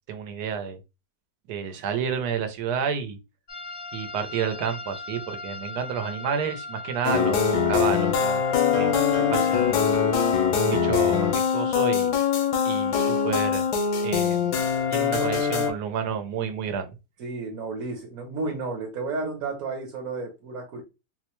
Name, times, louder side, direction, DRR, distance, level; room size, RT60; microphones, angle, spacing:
voice 1, 0.1-0.8 1.5-3.2 3.9-8.4 8.7-8.9 9.3-9.8 10.5-12.1 12.6-13.6 14.0-16.9, right 7 dB, 80° right, 1.2 m, -30 dB
sound 1, 3.5-14.6, left 2 dB, 65° left, 0.5 m, -41 dB
sound 2, 7.0-15.7, left 7 dB, 85° left, 1.3 m, -23 dB
voice 2, 8.7-9.6 15.1-15.4 17.2-20.8, right 3 dB, 65° right, 1.2 m, -33 dB
4.1 x 2.1 x 3.0 m
omnidirectional pair, 1.7 m